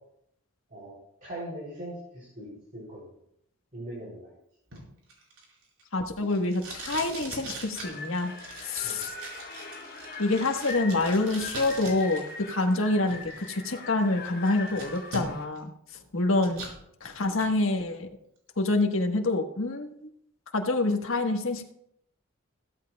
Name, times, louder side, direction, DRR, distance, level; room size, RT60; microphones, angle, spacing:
voice 1, 1.2-3.2 3.7-4.3 8.8-9.0, right 1 dB, 40° right, -6 dB, 3.6 m, -40 dB
Packing tape duct tape, 4.7-12.2 12.5-13.5 14.0-14.1 14.4-15.6 15.9-16.8 17.2-17.5, right 2 dB, 85° right, 4.9 m, -41 dB
voice 2, 5.9-8.3 8.6-9.0 10.2-15.7 16.1-16.6 17.0-18.1 18.6-20.0 20.5-21.6, left 2 dB, 70° left, 4 dB, 1.4 m, -27 dB
sound 1, 7.8-15.5, left 3 dB, 45° left, 3.7 m, -41 dB
16.0 x 14.0 x 2.4 m, 0.73 s
head